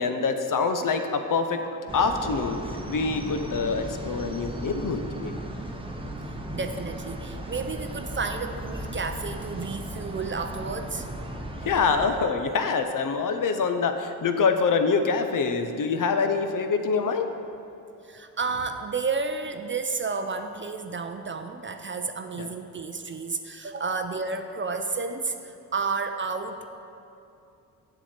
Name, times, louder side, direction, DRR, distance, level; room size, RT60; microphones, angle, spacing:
voice 1, 0.0-1.6 1.9-2.6 2.9-5.3 11.6-17.3 22.4-22.5, left 5 dB, 50° left, 7 dB, 0.7 m, -25 dB
sound 1, 1.9-12.1, right 1 dB, 15° right, 0.9 m, -36 dB
voice 2, 6.5-11.1 18.0-26.7, right 4 dB, 30° right, 7 dB, 0.5 m, -31 dB
7.1 x 7.1 x 4.4 m, 2.8 s
supercardioid pair, 50°, 42 cm